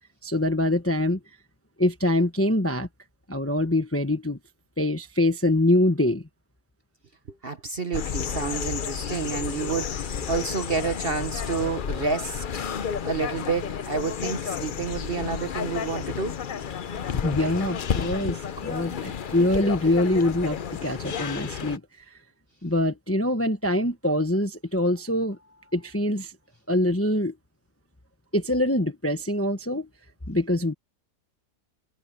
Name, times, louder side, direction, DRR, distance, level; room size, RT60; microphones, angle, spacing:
voice 1, 0.2-1.2 1.8-2.9 3.3-4.4 4.8-6.2 17.1-21.8 22.6-25.4 25.7-26.3 26.7-27.3 28.3-29.9 30.3-30.7, left 1 dB, 10° left, 0.9 m, -24 dB
voice 2, 7.3-12.5 13.0-16.4, right 5 dB, 40° right, 1.2 m, -29 dB
sound 1, 7.9-21.8, left 7 dB, 55° left, 0.5 m, -31 dB
omnidirectional pair, 1.8 m